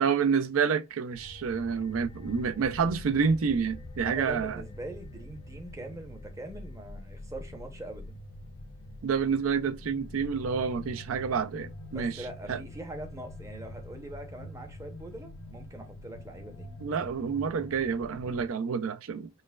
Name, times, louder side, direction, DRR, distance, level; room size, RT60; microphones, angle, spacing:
voice 1, 0.0-4.6 9.0-12.2 12.5-12.6 16.8-19.3, right 6 dB, 70° right, 0.4 m, -28 dB
sound 1, 1.1-18.5, left 1 dB, 90° left, 0.6 m, -45 dB
voice 2, 4.0-8.2 11.9-16.7, right 1 dB, 15° right, 0.7 m, -42 dB
5.4 x 2.1 x 2.2 m
head